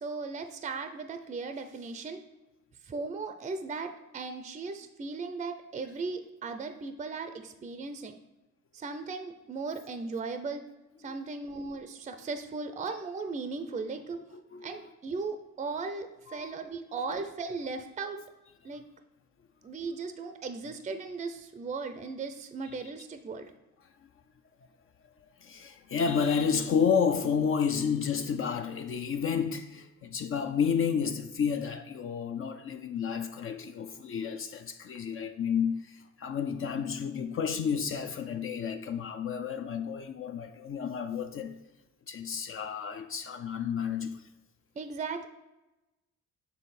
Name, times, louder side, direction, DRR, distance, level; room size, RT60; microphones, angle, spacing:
voice 1, 0.0-2.2 2.9-8.2 8.7-10.6 11.0-14.2 14.6-18.2 18.6-18.8 19.6-23.5 44.8-45.3, right 4 dB, 25° right, 0.5 m, -37 dB
voice 2, 14.3-14.7 16.3-16.5 24.0-24.1 25.4-41.5 42.1-44.2, left 6 dB, 45° left, 0.5 m, -31 dB
7.2 x 3.6 x 4.1 m
cardioid pair, 90°, 30 cm